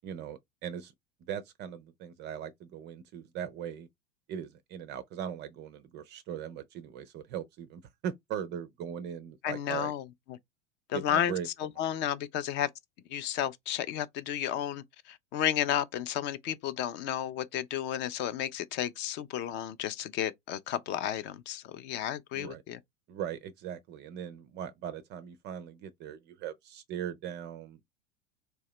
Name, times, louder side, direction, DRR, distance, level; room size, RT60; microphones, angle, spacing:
voice 1, 0.0-0.9 1.3-3.9 4.3-9.9 10.9-11.5 22.3-22.6 23.1-27.9, right 9 dB, 30° right, 0.4 m, -39 dB
voice 2, 9.4-10.0 10.9-11.3 11.6-12.7 13.1-22.8, left 11 dB, 30° left, 0.4 m, -32 dB
4.3 x 2.7 x 3.0 m
figure-of-eight pair, 85°, 38 cm